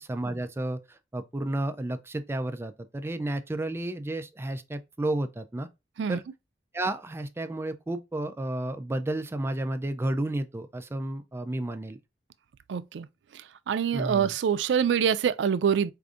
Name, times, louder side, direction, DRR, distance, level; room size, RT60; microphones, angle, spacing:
voice 1, 0.0-5.7 6.1-6.2 6.7-12.0 13.9-14.3, right 1 dB, 15° right, 0.3 m, -32 dB
voice 2, 12.7-13.1 13.3-15.9, right 7 dB, 90° right, 0.3 m, -25 dB
4.8 x 2.5 x 2.4 m
head